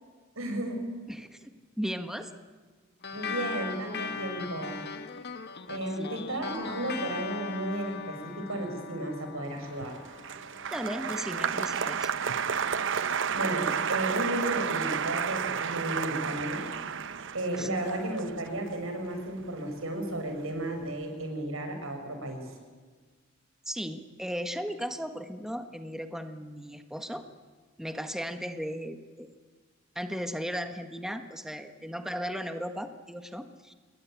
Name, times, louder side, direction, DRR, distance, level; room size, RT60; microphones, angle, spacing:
voice 1, 0.3-0.8 3.1-4.8 5.2-5.3 5.7-10.0 13.3-16.7 17.0-22.6, right 1 dB, 85° right, 5 dB, 6.6 m, -34 dB
voice 2, 1.1-1.5 1.8-2.3 6.0-6.1 10.7-12.1 17.6-17.7 23.7-27.2 27.8-29.3 29.9-33.7, equal, ahead, 7 dB, 1.4 m, -36 dB
sound 1, 3.0-11.9, left 5 dB, 55° left, 1.7 m, -39 dB
Applause, 9.7-20.1 20.3-20.9, right 6 dB, 65° right, 0.9 m, -32 dB
28.5 x 21.5 x 9.2 m, 1.4 s
head